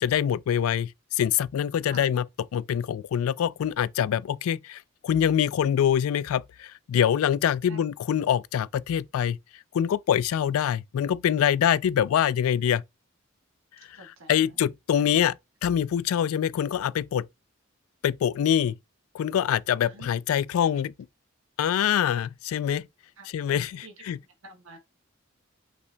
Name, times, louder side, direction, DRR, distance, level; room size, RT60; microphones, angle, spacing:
voice 1, 0.0-2.3 2.5-9.4 9.7-12.8 14.0-15.4 15.6-17.3 18.0-18.8 19.1-20.9 21.6-22.9 23.3-24.2, left 9 dB, 85° left, 0.3 m, -25 dB
voice 2, 13.9-14.5 19.8-20.1 23.2-23.3 23.8-23.9 24.4-24.8, right 3 dB, 85° right, 1.3 m, -47 dB
5.6 x 2.2 x 3.8 m
head